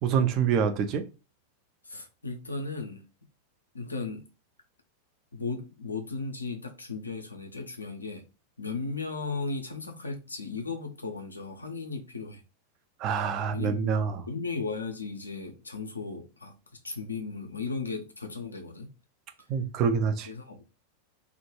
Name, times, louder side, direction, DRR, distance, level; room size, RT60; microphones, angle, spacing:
voice 1, 0.0-1.0 13.0-14.2 19.5-20.3, right 6 dB, 35° right, 0.4 m, -26 dB
voice 2, 1.8-3.0 3.7-4.3 5.3-8.2 8.6-12.4 13.5-16.5 16.8-18.9 20.3-20.6, left 4 dB, 75° left, 0.4 m, -36 dB
2.1 x 2.0 x 3.0 m
figure-of-eight pair, 90°, 0 cm